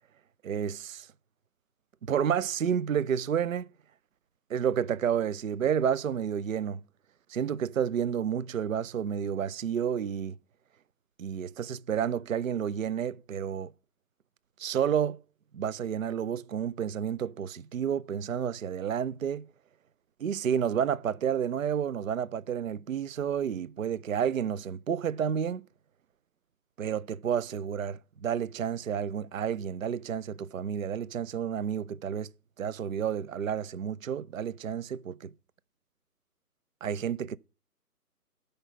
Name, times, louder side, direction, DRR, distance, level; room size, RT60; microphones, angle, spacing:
voice 1, 0.4-1.1 2.1-3.7 4.5-6.8 7.3-10.4 11.2-13.7 14.6-15.2 15.5-19.5 20.2-25.7 26.8-32.3 32.6-35.3 36.8-37.4, right 8 dB, 55° right, 0.5 m, -30 dB
12.5 x 5.3 x 5.6 m
figure-of-eight pair, 155°, 47 cm